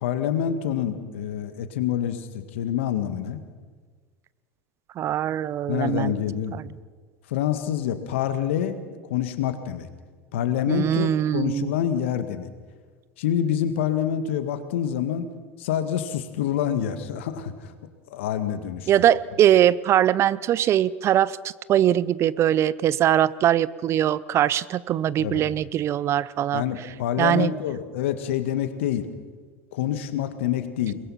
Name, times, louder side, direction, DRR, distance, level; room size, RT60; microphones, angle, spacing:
voice 1, 0.0-3.4 5.7-6.6 7.3-9.9 10.3-12.5 13.2-15.3 15.6-17.7 18.1-18.9 25.2-25.5 26.5-29.1 29.7-30.9, left 10 dB, 70° left, 9 dB, 1.8 m, -27 dB
voice 2, 5.0-6.1 6.5-6.6 10.7-11.7 18.9-21.4 21.7-26.6 27.2-27.5, right 11 dB, 40° right, 20 dB, 0.6 m, -21 dB
22.5 x 21.0 x 5.8 m, 1.5 s
hypercardioid pair, 80°, 7 cm